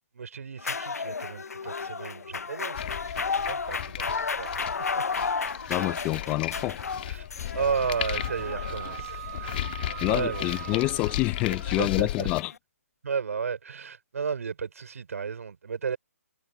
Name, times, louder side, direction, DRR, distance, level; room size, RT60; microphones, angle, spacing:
voice 1, 0.1-3.0 3.3-5.0 7.1-7.3 7.5-9.6 10.1-10.4 11.5-12.3 13.0-16.0, right 6 dB, 70° right, 5.1 m, -33 dB
sound 1, 0.6-12.6, left 5 dB, 85° left, 0.7 m, -34 dB
sound 2, 2.7-12.4, left 13 dB, 40° left, 1.6 m, -35 dB
voice 2, 5.7-6.8 10.0-12.5, left 20 dB, 20° left, 0.6 m, -27 dB
Wind instrument woodwind instrument, 7.7-11.3, right 15 dB, 40° right, 1.3 m, -40 dB
hypercardioid pair, 150°, 8 cm